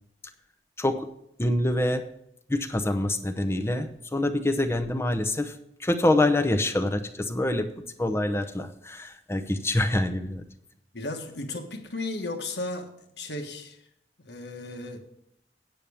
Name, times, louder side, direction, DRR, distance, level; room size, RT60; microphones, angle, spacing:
voice 1, 1.4-2.0 2.5-5.5 5.8-7.7 8.0-10.4, left 1 dB, 15° left, 9 dB, 0.7 m, -25 dB
voice 2, 10.9-12.9 13.2-13.8 14.2-15.0, left 2 dB, 70° left, 5 dB, 1.5 m, -35 dB
9.2 x 6.9 x 6.9 m, 0.76 s
head